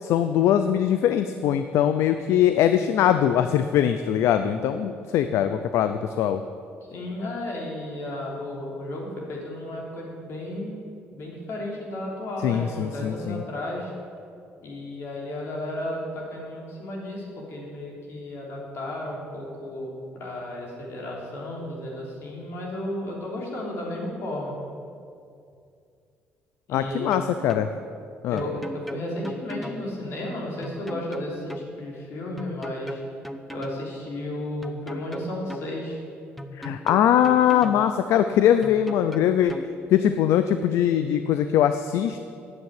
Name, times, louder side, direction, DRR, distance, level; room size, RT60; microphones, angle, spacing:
voice 1, 0.0-6.4 12.4-13.4 26.7-27.7 28.2-28.4 36.6-39.5 39.9-42.2, left 10 dB, 80° left, 9 dB, 0.5 m, -21 dB
voice 2, 6.9-10.8 11.1-13.9 14.6-24.5 26.7-27.1 28.3-33.0 33.5-36.0, left 1 dB, 65° left, -2 dB, 3.4 m, -33 dB
sound 1, 26.9-27.7 28.4-29.8 30.6-31.7 32.4-33.8 34.6-35.7 36.4-37.8 38.6-39.7, equal, ahead, 0.8 m, -37 dB
9.7 x 7.5 x 9.0 m, 2.4 s
cardioid pair, 90°, 5 cm